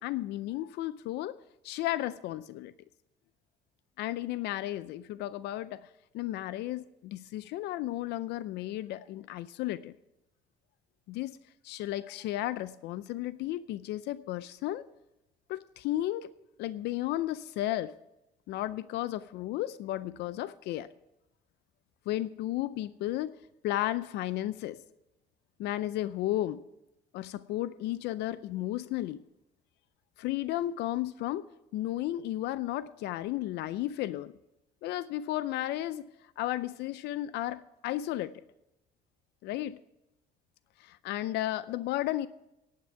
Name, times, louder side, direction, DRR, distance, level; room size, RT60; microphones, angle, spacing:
voice 1, 0.0-1.4 1.6-2.7 4.0-5.9 6.1-9.9 11.1-11.4 11.6-14.9 15.5-16.3 16.6-17.9 18.5-20.9 22.1-23.3 23.6-24.8 25.6-26.6 27.1-29.2 30.2-31.5 31.7-34.3 34.8-36.0 36.4-38.4 39.4-39.8 40.8-42.3, left 14 dB, 80° left, 16 dB, 0.5 m, -33 dB
11.0 x 8.8 x 5.8 m, 0.91 s
cardioid pair, 110°, 17 cm